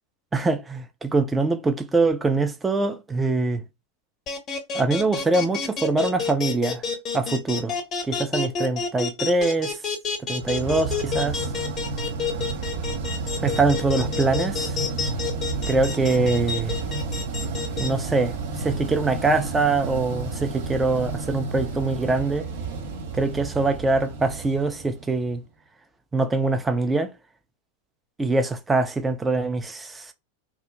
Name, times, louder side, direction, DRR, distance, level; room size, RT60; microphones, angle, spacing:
voice 1, 0.3-3.6 4.7-6.8 7.1-7.8 8.1-9.8 10.2-11.4 13.4-14.8 15.7-16.8 17.8-22.5 23.1-25.4 26.1-27.1 28.2-30.1, right 3 dB, 10° right, 0.4 m, -23 dB
sound 1, 4.3-17.9, left 6 dB, 30° left, 0.6 m, -29 dB
sound 2, 10.4-25.4, right 4 dB, 55° right, 0.6 m, -31 dB
2.5 x 2.1 x 3.0 m
figure-of-eight pair, 90°, 0 cm